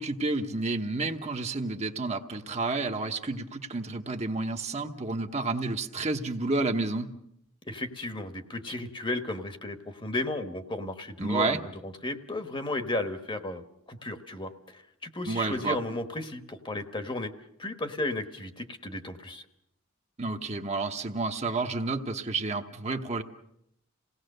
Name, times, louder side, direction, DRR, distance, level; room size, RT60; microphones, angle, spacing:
voice 1, 0.0-7.1 11.2-11.6 15.3-15.8 20.2-23.2, right 3 dB, 30° right, 5 dB, 1.0 m, -30 dB
voice 2, 7.7-13.6 13.9-17.3 17.6-19.4, left 2 dB, 20° left, 8 dB, 1.2 m, -34 dB
28.0 x 18.0 x 6.7 m, 0.79 s
head